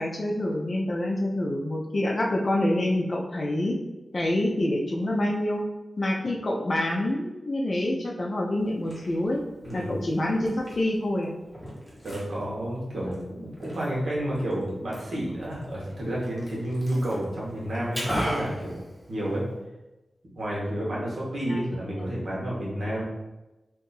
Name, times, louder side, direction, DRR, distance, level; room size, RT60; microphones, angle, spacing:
voice 1, 0.0-3.8 4.1-5.7 6.0-9.4 9.7-11.3 21.5-22.0, left 1 dB, 45° left, 0 dB, 0.5 m, -27 dB
Liquid, 8.6-19.6, equal, 5° left, 1.1 m, -39 dB
voice 2, 9.6-10.0 12.0-18.7 19.1-19.4 20.4-23.0, right 1 dB, 70° right, -6 dB, 1.1 m, -30 dB
2.7 x 2.5 x 3.9 m, 1.0 s
wide cardioid pair, 110°, 0 cm